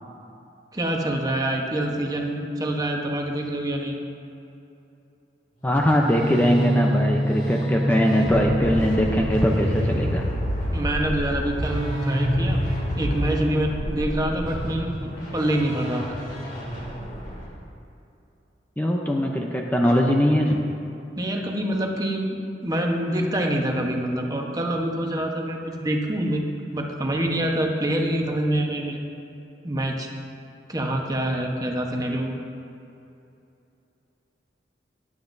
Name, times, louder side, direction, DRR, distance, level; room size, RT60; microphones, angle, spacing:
voice 1, 0.7-4.0 10.7-12.6 13.0-16.2 21.2-29.0 29.6-30.1 30.7-32.3, right 1 dB, 20° right, 1 dB, 1.1 m, -26 dB
voice 2, 5.6-10.3 18.8-20.6, equal, 10° left, 0 dB, 0.7 m, -21 dB
sound 1, 5.7-17.5, equal, 50° left, 2.5 m, -27 dB
16.5 x 11.0 x 2.7 m, 2.7 s
head